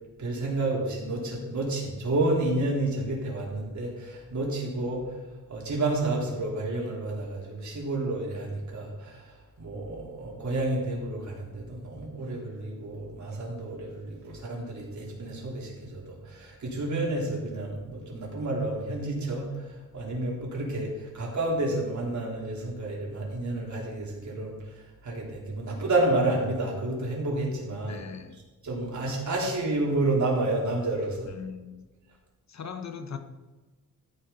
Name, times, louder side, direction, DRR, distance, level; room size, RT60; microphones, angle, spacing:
voice 1, 0.2-28.0 28.6-31.3, right 2 dB, 55° right, 4.1 m, -30 dB
voice 2, 27.9-28.4 31.3-31.9 32.5-33.2, left 6 dB, 50° left, 1.1 m, -39 dB
14.0 x 9.8 x 4.2 m
wide cardioid pair, 115°, 35 cm